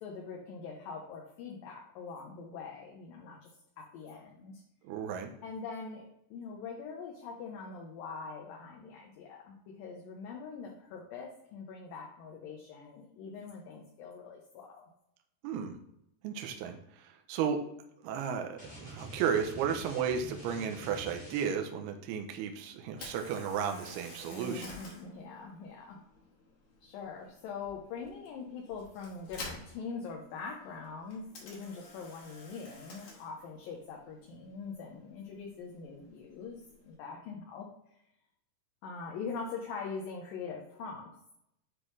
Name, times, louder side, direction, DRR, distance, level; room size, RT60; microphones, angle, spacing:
voice 1, 0.0-3.5 3.8-4.6 5.4-14.9 24.3-26.0 26.8-37.7 38.8-41.1, left 5 dB, 75° left, -1 dB, 2.3 m, -43 dB
voice 2, 4.8-5.3 15.4-15.8 16.2-17.6 18.0-24.7, right 7 dB, 80° right, 4 dB, 2.6 m, -34 dB
sound 1, 18.6-21.8, right 1 dB, 5° left, 1.2 m, -47 dB
Camera, 22.9-36.9, left 3 dB, 50° left, 2.4 m, -52 dB
9.8 x 3.8 x 3.2 m, 0.79 s
omnidirectional pair, 4.7 m